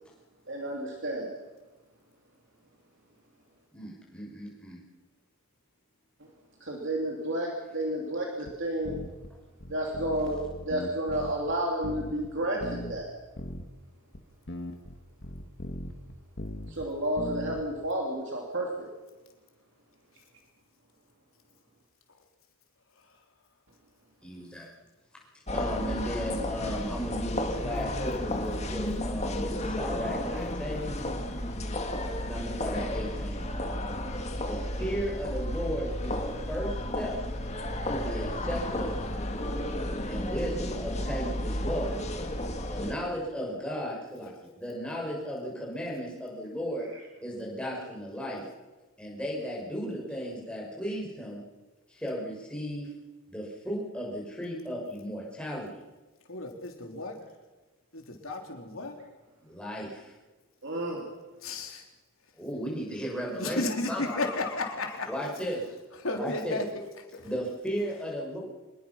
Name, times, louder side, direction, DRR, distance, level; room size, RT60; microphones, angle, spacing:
voice 1, 0.5-1.3 6.6-9.0 9.7-13.1 16.7-18.9 25.8-25.9 60.6-61.0, right 1 dB, 55° right, -1 dB, 3.1 m, -31 dB
voice 2, 3.7-4.8 24.2-24.7 25.5-31.0 32.2-33.5 34.4-37.2 37.9-39.2 40.1-42.0 42.7-46.9 47.2-48.5 49.0-51.4 51.9-52.9 53.3-55.8 59.4-60.1 62.4-63.6 63.9-64.3 65.1-65.7 66.1-66.6 67.2-68.4, equal, 5° left, -3 dB, 6.2 m, -35 dB
sound 1, 8.5-8.6 8.9-9.3 9.6-11.6 11.8-12.3 12.6-13.0 13.4-13.7 14.1-14.2 14.5-16.9 17.2-17.7, left 1 dB, 50° left, 1.9 m, -39 dB
sound 2, 25.5-42.9, left 1 dB, 30° left, 1.9 m, -32 dB
voice 3, 56.3-57.2 57.9-59.0 61.4-61.9 63.3-65.2 66.0-66.6 67.1-67.3, left 2 dB, 70° left, 2 dB, 3.8 m, -33 dB
25.5 x 21.5 x 6.0 m, 1.2 s
head